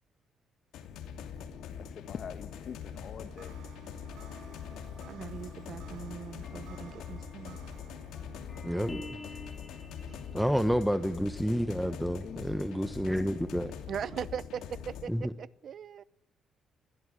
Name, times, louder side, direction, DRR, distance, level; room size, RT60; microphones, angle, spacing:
sound 1, 0.7-15.1, left 7 dB, 85° left, 2.7 m, -43 dB
voice 1, 1.8-3.6 10.1-10.2 11.9-12.6, left 7 dB, 55° left, 1.3 m, -45 dB
sound 2, 2.5-11.8, right 6 dB, 90° right, 5.5 m, -58 dB
sound 3, 4.1-10.7, left 3 dB, 25° left, 5.9 m, -51 dB
voice 2, 5.1-7.6 13.9-16.0, right 8 dB, 60° right, 0.8 m, -40 dB
voice 3, 8.6-9.2 10.3-13.7 15.1-15.3, equal, ahead, 1.2 m, -29 dB
21.5 x 16.0 x 9.9 m
cardioid pair, 90°, 0 cm